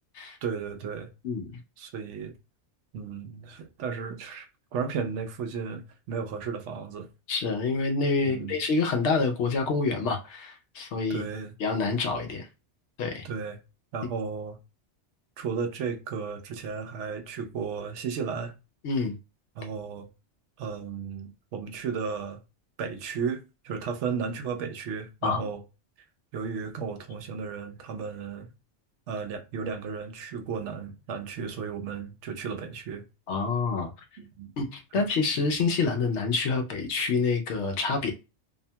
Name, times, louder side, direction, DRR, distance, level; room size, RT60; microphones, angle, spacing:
voice 1, 0.4-1.1 1.8-2.4 2.9-7.1 8.2-8.5 11.1-11.5 13.2-13.6 13.9-14.6 15.4-18.5 19.6-20.1 20.6-22.4 22.8-25.6 26.3-28.5 29.1-33.0 34.2-34.5, right 6 dB, 80° right, 0.9 m, -34 dB
voice 2, 7.3-11.3 11.6-12.5 13.0-13.2 18.8-19.2 25.2-25.5 33.3-33.9 34.6-38.1, left 4 dB, 75° left, 0.9 m, -27 dB
2.7 x 2.2 x 2.7 m
omnidirectional pair, 1.2 m